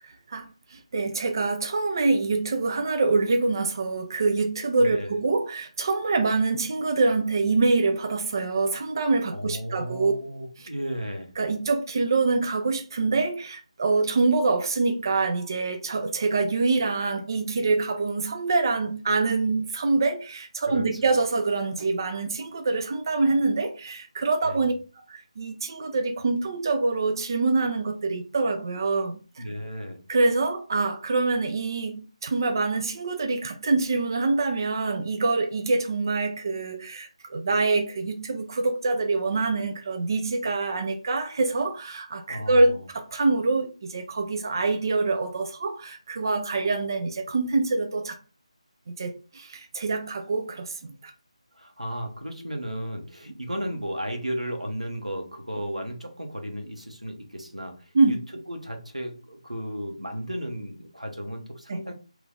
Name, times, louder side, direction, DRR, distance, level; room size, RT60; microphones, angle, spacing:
voice 1, 0.0-10.1 10.6-10.7 11.4-24.7 25.1-29.4 30.1-48.2 48.9-51.1 57.9-58.2 61.7-61.8, right 3 dB, 35° right, 0.3 m, -25 dB
voice 2, 4.8-5.2 9.3-11.3 20.7-21.2 24.4-24.7 29.4-30.0 42.3-42.8 51.5-58.2 58.5-61.9, equal, 90° right, 1.0 m, -34 dB
3.0 x 2.4 x 3.8 m
figure-of-eight pair, 160°, 4 cm